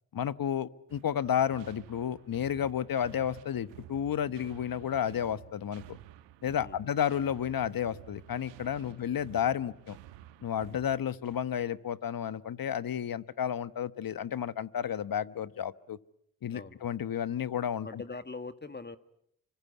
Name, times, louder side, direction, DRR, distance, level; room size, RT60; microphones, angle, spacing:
voice 1, 0.1-6.0 6.4-10.0 10.4-16.0 16.4-18.0, left 9 dB, 50° left, 16 dB, 1.2 m, -32 dB
sound 1, 0.9-11.6, right 14 dB, 85° right, 1.2 m, -52 dB
voice 2, 16.5-16.9 17.8-19.0, left 3 dB, 25° left, 11 dB, 1.8 m, -42 dB
27.0 x 25.0 x 8.4 m, 0.73 s
hypercardioid pair, 45°, 43 cm